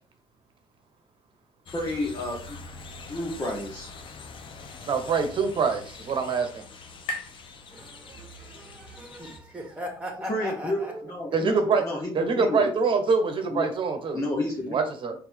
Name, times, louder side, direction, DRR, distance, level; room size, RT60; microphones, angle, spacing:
sound 1, 1.7-9.4, left 4 dB, 50° left, 0.7 m, -45 dB
voice 1, 1.7-2.6 3.1-3.9 10.2-12.7 13.5-13.7 14.1-14.8, left 1 dB, 30° left, 1.2 m, -31 dB
sound 2, 4.7-8.5, left 2 dB, 80° left, 0.9 m, -42 dB
voice 2, 4.9-6.6 10.8-11.0 11.3-11.8 12.1-14.2 14.7-15.1, right 4 dB, 50° right, 1.1 m, -25 dB
voice 3, 7.7-10.9, equal, 10° right, 1.8 m, -38 dB
4.3 x 2.8 x 3.4 m
hypercardioid pair, 60°, 11 cm